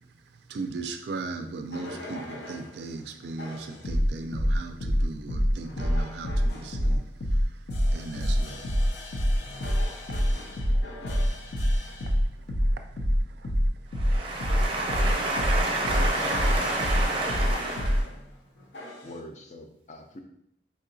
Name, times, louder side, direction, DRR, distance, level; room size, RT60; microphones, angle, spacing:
voice 1, 0.5-8.9 9.3-9.4 10.5-13.7, right 3 dB, 70° right, 0.3 m, -39 dB
sound 1, 1.7-2.7 3.4-18.1 18.7-19.1, equal, 85° left, 0.6 m, -26 dB
voice 2, 13.9-18.1, right 2 dB, 30° right, 0.7 m, -29 dB
voice 3, 14.7-15.6 15.9-17.1 18.1-18.3 19.0-20.2, left 1 dB, 40° left, 0.4 m, -43 dB
4.2 x 2.8 x 2.6 m
head